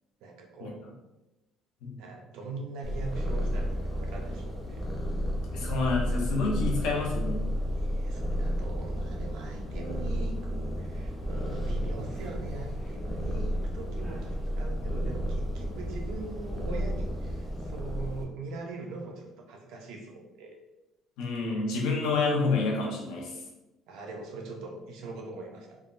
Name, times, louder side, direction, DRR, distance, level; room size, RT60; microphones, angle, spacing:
voice 1, 0.2-0.9 2.0-4.8 7.7-20.6 23.9-25.8, right 3 dB, 80° right, 1 dB, 0.5 m, -42 dB
Purr, 2.8-18.2, equal, 10° left, 0.5 m, -32 dB
voice 2, 5.5-7.5 21.2-23.4, left 3 dB, 85° left, -2 dB, 0.7 m, -28 dB
3.4 x 2.1 x 2.5 m, 1.0 s
cardioid pair, 150°, 0 cm